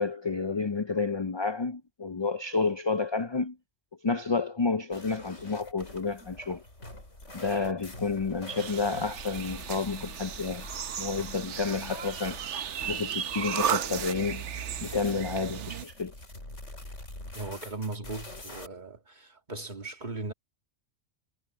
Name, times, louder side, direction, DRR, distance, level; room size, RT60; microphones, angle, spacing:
voice 1, 0.0-3.6 4.0-6.6 7.3-10.6 11.0-12.4 12.8-14.4 14.8-16.1, left 4 dB, 45° left, 0.3 m, -30 dB
sound 1, 4.9-18.7, left 1 dB, 85° left, 6.0 m, -46 dB
sound 2, 8.6-15.8, right 9 dB, 80° right, 1.1 m, -35 dB
voice 2, 17.3-20.3, right 2 dB, 40° right, 2.3 m, -38 dB
omnidirectional pair, 1.2 m